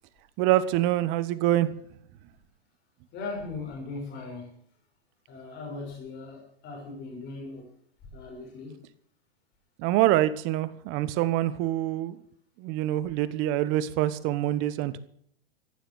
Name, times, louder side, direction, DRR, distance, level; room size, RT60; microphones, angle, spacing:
voice 1, 0.4-1.7 9.8-12.2 12.6-15.0, right 14 dB, 40° right, 15 dB, 1.2 m, -25 dB
voice 2, 3.1-4.6 5.3-7.7 8.1-8.8, left 3 dB, 35° left, 0 dB, 6.5 m, -39 dB
15.0 x 10.0 x 7.9 m, 0.65 s
hypercardioid pair, 115°, 31 cm